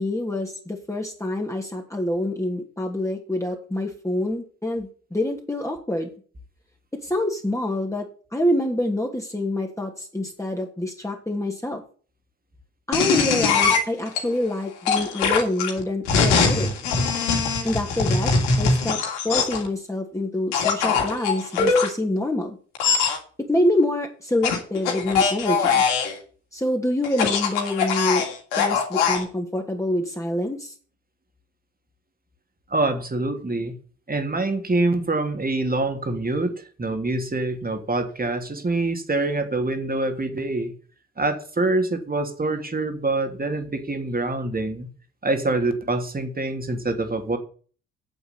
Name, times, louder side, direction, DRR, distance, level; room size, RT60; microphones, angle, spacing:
voice 1, 0.0-6.1 7.0-11.8 12.9-16.7 17.6-22.6 23.5-25.8 26.5-28.2 28.6-30.7, left 1 dB, 10° left, 1 dB, 2.8 m, -26 dB
sound 1, 12.9-14.2 14.9-19.7 20.5-21.9 22.8-23.2 24.4-26.2 27.0-29.2, left 5 dB, 85° left, 2.8 m, -22 dB
voice 2, 32.7-33.8 34.1-40.7 41.2-44.9 45.2-47.4, right 2 dB, 25° right, 6 dB, 2.9 m, -25 dB
9.6 x 6.9 x 6.9 m, 0.41 s
hypercardioid pair, 50°, 35 cm